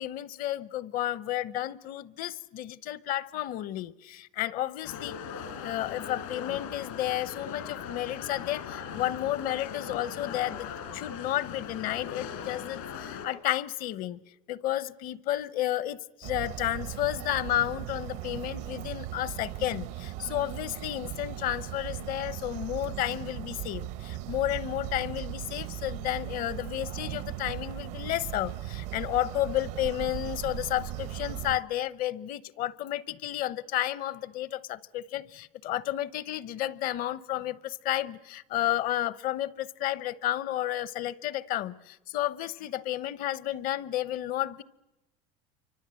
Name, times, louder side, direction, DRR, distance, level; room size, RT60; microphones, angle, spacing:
voice 1, 0.0-5.1 5.6-14.2 14.5-44.6, left 13 dB, 55° left, 0.9 m, -32 dB
sound 1, 4.8-13.3, left 7 dB, 85° left, 5.1 m, -39 dB
sound 2, 16.2-31.6, right 14 dB, 75° right, 1.0 m, -38 dB
28.0 x 25.0 x 7.7 m
supercardioid pair, 105°, 17 cm